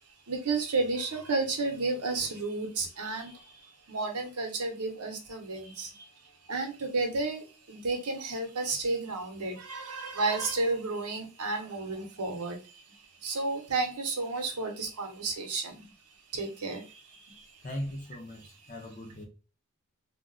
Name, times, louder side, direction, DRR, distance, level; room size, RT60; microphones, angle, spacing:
voice 1, 0.3-6.1 6.5-15.9 16.3-17.6, right 3 dB, 80° right, 0.8 m, -32 dB
voice 2, 17.6-19.2, equal, 35° left, 0.5 m, -39 dB
2.3 x 2.0 x 3.8 m
head